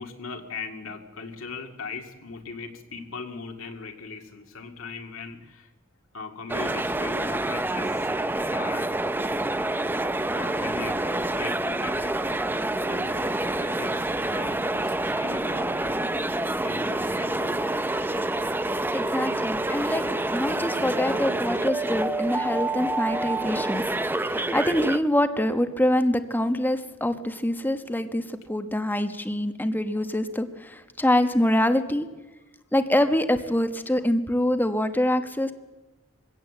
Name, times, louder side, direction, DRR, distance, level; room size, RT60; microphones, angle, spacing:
voice 1, 0.0-5.7 6.1-8.1 8.5-8.9 10.3-12.3 12.8-16.1 16.6-17.8 18.8-19.0, left 4 dB, 75° left, 3 dB, 2.2 m, -39 dB
sound 1, 6.5-25.0, right 2 dB, 10° right, 0.6 m, -27 dB
voice 2, 18.9-20.0 20.3-23.8 24.1-32.1 32.7-35.5, left 1 dB, 10° left, 9 dB, 1.1 m, -25 dB
22.5 x 17.0 x 7.7 m, 1.1 s
head